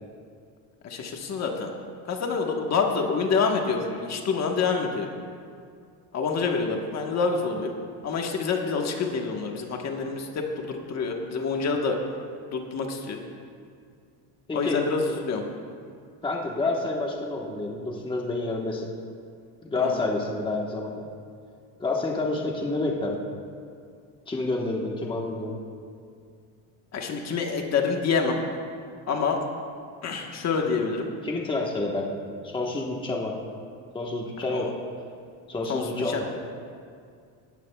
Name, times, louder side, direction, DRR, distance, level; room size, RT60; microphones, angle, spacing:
voice 1, 0.8-1.7 2.1-5.1 6.1-7.7 8.0-12.0 12.5-13.2 14.5-15.4 19.8-20.0 26.9-28.4 29.1-29.4 30.0-31.1 34.5-34.7 35.7-36.2, left 5 dB, 40° left, 2 dB, 1.4 m, -27 dB
voice 2, 14.5-14.8 16.2-18.9 19.6-21.1 21.8-23.2 24.3-25.5 31.2-32.2 32.4-33.3 33.9-34.7 35.5-36.2, left 2 dB, 10° left, -1 dB, 1.3 m, -28 dB
19.0 x 13.5 x 2.4 m, 2.3 s
cardioid pair, 125°, 41 cm